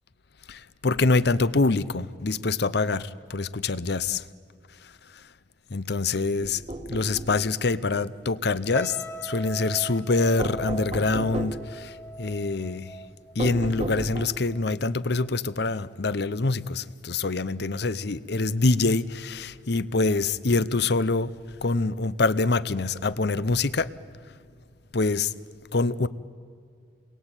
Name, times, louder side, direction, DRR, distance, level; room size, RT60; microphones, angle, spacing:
voice 1, 0.5-4.2 5.7-9.0 9.2-11.9 12.2-12.9 13.3-21.3 21.6-23.9 24.9-25.3 25.7-26.1, left 3 dB, 65° left, 0.8 m, -25 dB
sound 1, 6.4-7.4 10.4-11.7 13.4-14.6, right 1 dB, 35° right, 1.6 m, -33 dB
sound 2, 8.7-14.0 14.3-14.7, right 1 dB, 10° left, 1.4 m, -39 dB
29.5 x 22.0 x 9.0 m
head